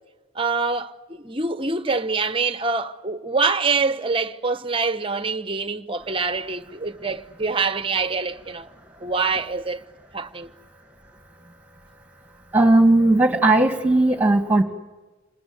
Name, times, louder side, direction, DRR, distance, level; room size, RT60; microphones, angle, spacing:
voice 1, 0.3-8.7 9.0-9.8 10.1-10.5, right 4 dB, 25° right, 0.9 m, -25 dB
voice 2, 12.5-14.6, right 2 dB, 5° right, 2.2 m, -17 dB
28.0 x 20.5 x 8.2 m
head